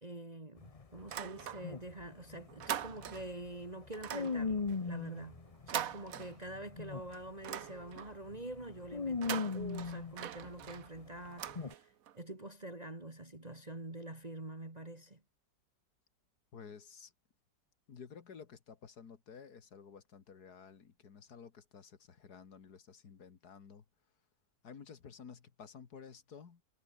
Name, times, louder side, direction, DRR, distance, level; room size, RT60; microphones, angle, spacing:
voice 1, 0.0-5.4 5.7-15.2, right 1 dB, 20° right, 2.5 m, -46 dB
sound 1, 0.6-7.3 7.6-7.9 8.3-10.8 11.5-11.7, left 4 dB, 25° left, 0.8 m, -38 dB
sound 2, 1.0-2.0 2.3-3.4 3.9-6.8 7.1-8.3 9.1-12.2, right 10 dB, 55° right, 1.2 m, -43 dB
voice 2, 16.5-17.1 17.9-23.8 24.6-26.6, left 6 dB, 60° left, 2.3 m, -53 dB
omnidirectional pair, 1.9 m